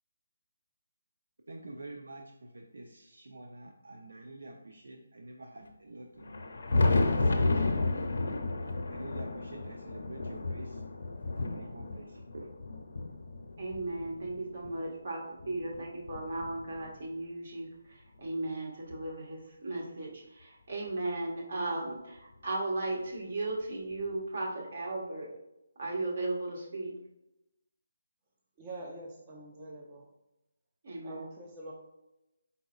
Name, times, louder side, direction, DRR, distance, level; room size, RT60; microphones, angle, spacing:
voice 1, 1.5-6.5 7.1-7.7 8.9-10.8 11.3-12.5, right 2 dB, 75° right, 2 dB, 0.5 m, -47 dB
Thunder, 6.2-14.8 15.4-17.1 18.3-18.4 18.9-19.0 20.9-21.0 22.3-22.4 24.0-24.1, left 2 dB, 65° left, 0.6 m, -32 dB
voice 2, 13.6-25.3 25.8-26.9 30.8-31.3, right 2 dB, 55° right, -2 dB, 1.5 m, -36 dB
voice 3, 28.6-30.0 31.0-31.7, right 1 dB, 25° right, -2 dB, 0.6 m, -45 dB
4.7 x 4.1 x 2.4 m, 0.90 s
figure-of-eight pair, 155°, 0 cm